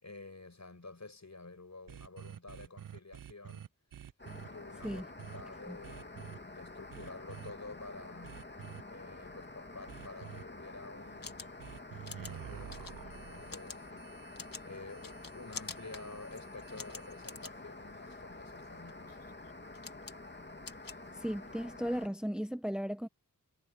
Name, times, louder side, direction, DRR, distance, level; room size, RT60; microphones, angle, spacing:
voice 1, 0.0-3.6 4.5-5.1 5.3-8.4 8.9-11.5 12.4-14.1 14.6-19.2, left 3 dB, 55° left, 5.9 m, -50 dB
sound 1, 1.9-4.5 4.8-5.4 5.8-6.4 6.9-7.5 8.2-8.8 9.9-10.4 11.6-17.4, right 9 dB, 80° right, 0.5 m, -49 dB
sound 2, 4.2-22.1, left 2 dB, 35° left, 1.8 m, -49 dB
sound 3, 11.0-21.6, left 4 dB, 85° left, 1.9 m, -49 dB
voice 2, 21.1-23.1, equal, ahead, 0.9 m, -36 dB
wide cardioid pair, 60°, 33 cm